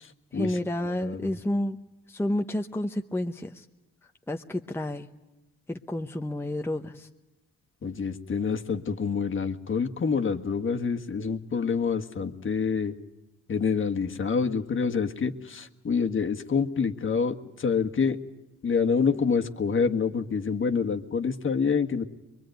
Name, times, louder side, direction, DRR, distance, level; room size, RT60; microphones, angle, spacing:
voice 1, 0.3-1.8 2.1-3.6 4.3-5.1 5.7-7.1, left 1 dB, 10° left, 5 dB, 0.9 m, -30 dB
voice 2, 1.0-1.3 7.8-12.9 13.5-18.2 18.6-22.0, left 5 dB, 40° left, 5 dB, 1.6 m, -27 dB
23.0 x 23.0 x 9.2 m, 1.0 s
cardioid pair, 90°, 30 cm